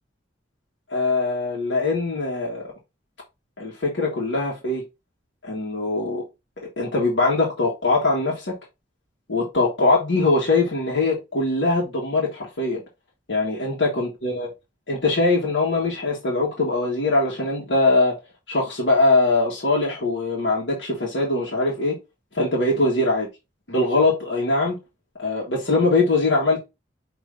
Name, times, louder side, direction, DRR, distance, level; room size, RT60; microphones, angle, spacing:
voice 1, 0.9-2.7 3.6-4.8 5.4-6.2 6.6-8.5 9.3-12.8 13.3-14.5 14.9-18.1 18.5-22.0 22.3-23.3 23.7-24.8 25.2-26.6, left 2 dB, 75° left, 1.6 m, -22 dB
5.3 x 3.0 x 3.3 m
head